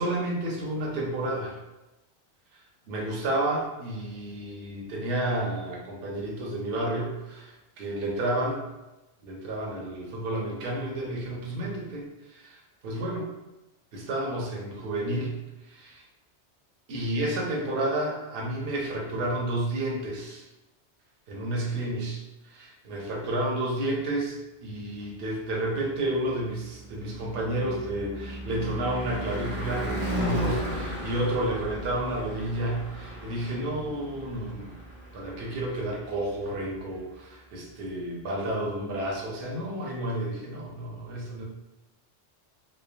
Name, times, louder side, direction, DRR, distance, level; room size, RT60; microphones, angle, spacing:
voice 1, 0.0-1.6 2.9-8.7 9.2-12.6 12.8-13.3 13.9-15.3 15.7-16.0 16.9-20.4 21.3-22.2 22.5-34.8 35.1-41.4, right 1 dB, 60° right, -1 dB, 0.8 m, -31 dB
Car passing by / Truck / Engine, 26.2-36.3, equal, 40° right, 0.4 m, -35 dB
3.1 x 2.0 x 2.4 m, 1.0 s
omnidirectional pair, 1.1 m